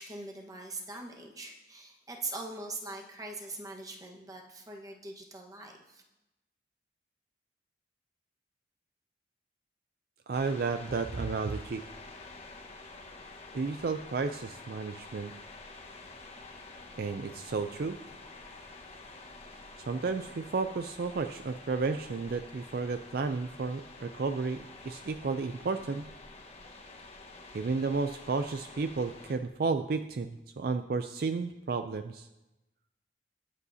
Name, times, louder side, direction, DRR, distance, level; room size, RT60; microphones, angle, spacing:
voice 1, 0.0-6.0, right 2 dB, 20° right, 0 dB, 1.3 m, -42 dB
sound 1, 10.3-29.3, left 3 dB, 35° left, 1.3 m, -49 dB
voice 2, 10.3-11.8 13.5-15.3 17.0-18.0 19.9-26.1 27.5-32.3, right 4 dB, 55° right, 8 dB, 0.4 m, -32 dB
22.0 x 8.2 x 2.8 m, 0.98 s
head